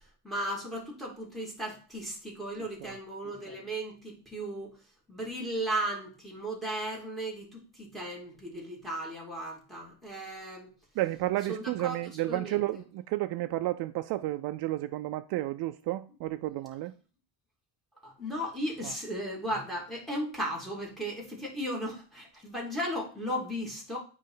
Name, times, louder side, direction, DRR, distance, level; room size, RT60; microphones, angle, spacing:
voice 1, 0.2-4.7 5.1-10.7 11.5-12.6 18.0-24.0, right 1 dB, ahead, 2.5 m, -36 dB
voice 2, 11.0-16.9 18.8-18.9, right 16 dB, 75° right, 0.5 m, -32 dB
9.2 x 3.2 x 3.8 m
cardioid pair, 120°, 39 cm